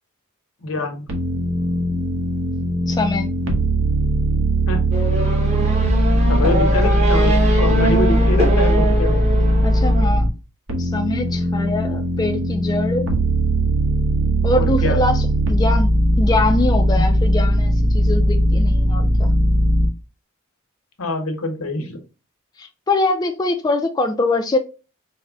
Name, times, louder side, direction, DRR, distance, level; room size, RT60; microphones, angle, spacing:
voice 1, 0.6-1.1 4.7-4.9 6.3-9.2 14.6-15.0 16.9-17.0 21.0-22.0, left 2 dB, 85° left, 0.9 m, -25 dB
sound 1, 1.1-10.3 10.7-19.9, equal, 75° right, 0.9 m, -18 dB
voice 2, 2.9-3.3 9.6-10.3 10.8-13.1 14.4-19.3 22.6-24.6, left 2 dB, 20° left, 0.3 m, -23 dB
Race car auto racing / Accelerating revving vroom, 4.9-10.1, right 2 dB, 30° right, 0.9 m, -23 dB
4.5 x 2.1 x 3.5 m
head